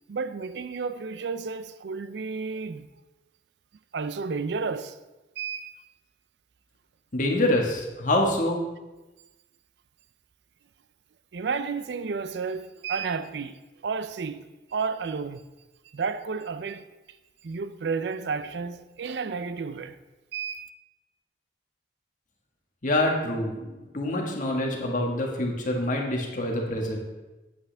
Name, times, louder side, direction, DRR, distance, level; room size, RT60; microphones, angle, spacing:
voice 1, 0.1-2.9 3.9-5.0 5.4-5.7 11.3-15.4 15.9-16.9 17.4-20.0 20.3-20.7, right 5 dB, 70° right, 0.4 m, -32 dB
voice 2, 7.1-8.6 22.8-27.0, left 1 dB, 45° left, 1.5 m, -26 dB
9.2 x 8.1 x 3.4 m
head